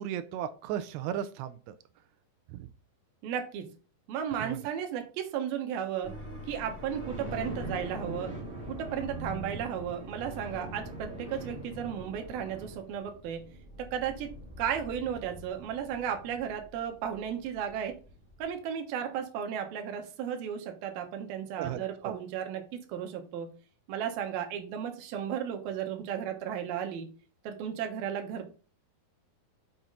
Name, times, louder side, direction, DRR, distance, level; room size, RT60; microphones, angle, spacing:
voice 1, 0.0-1.8 2.5-2.7 4.4-4.6 21.6-22.1, right 10 dB, 90° right, 11 dB, 2.8 m, -36 dB
voice 2, 3.2-3.7 4.1-6.1 6.5-8.3 8.7-13.4 13.8-14.3 14.6-17.9 18.4-23.5 23.9-27.1 27.4-28.5, right 8 dB, 70° right, 5 dB, 2.9 m, -34 dB
sound 1, 6.0-18.5, right 1 dB, 20° right, 2.2 m, -42 dB
6.2 x 5.7 x 3.9 m, 0.36 s
omnidirectional pair, 4.8 m